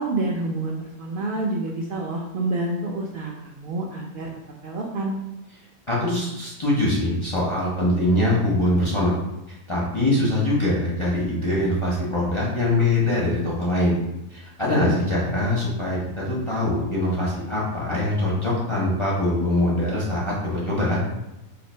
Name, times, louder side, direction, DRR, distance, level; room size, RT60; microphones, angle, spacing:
voice 1, 0.0-4.3 4.6-5.1, right 2 dB, 70° right, -1 dB, 0.5 m, -28 dB
voice 2, 5.9-9.2 9.7-14.0 14.3-21.0, left 1 dB, 35° left, -6 dB, 0.5 m, -23 dB
2.7 x 2.5 x 4.2 m, 0.96 s
omnidirectional pair, 1.4 m